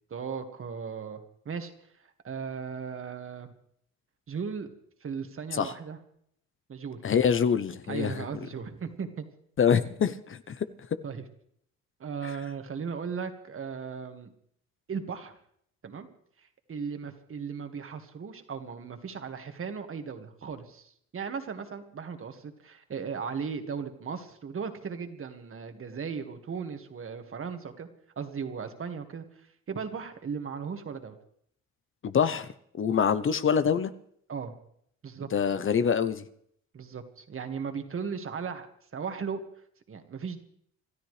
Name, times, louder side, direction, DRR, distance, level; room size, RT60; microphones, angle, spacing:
voice 1, 0.1-1.7 2.2-3.5 4.3-4.7 5.0-6.0 6.7-7.2 7.9-9.2 11.0-11.2 12.0-14.3 14.9-15.4 15.8-16.1 16.7-27.9 28.2-29.2 29.7-31.2 34.3-34.6 35.0-35.6 36.7-38.7 38.9-39.4 39.9-40.4, right 6 dB, 45° right, 1.8 m, -37 dB
voice 2, 7.0-8.2 9.6-10.6 12.2-12.3 32.0-32.5 32.7-33.9 35.3-36.2, left 7 dB, 45° left, 0.8 m, -25 dB
27.0 x 13.0 x 3.3 m
cardioid pair, 90°, 30 cm